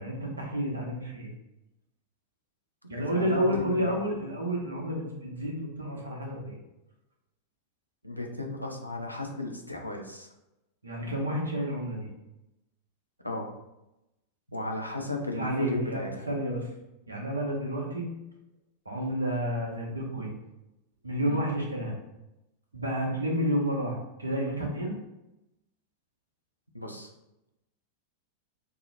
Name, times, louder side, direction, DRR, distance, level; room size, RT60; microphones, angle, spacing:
voice 1, 0.0-1.3 2.9-6.6 10.8-12.1 15.3-16.7 17.1-18.1 18.8-20.3 21.0-21.9 22.7-24.9, equal, 80° right, -1 dB, 0.7 m, -30 dB
voice 2, 3.0-4.0 8.0-10.3 13.2-13.5 14.5-16.3 21.2-21.4 26.7-27.1, left 2 dB, 90° left, 1 dB, 0.4 m, -35 dB
2.7 x 2.0 x 3.9 m, 0.93 s
figure-of-eight pair, 90°, 0 cm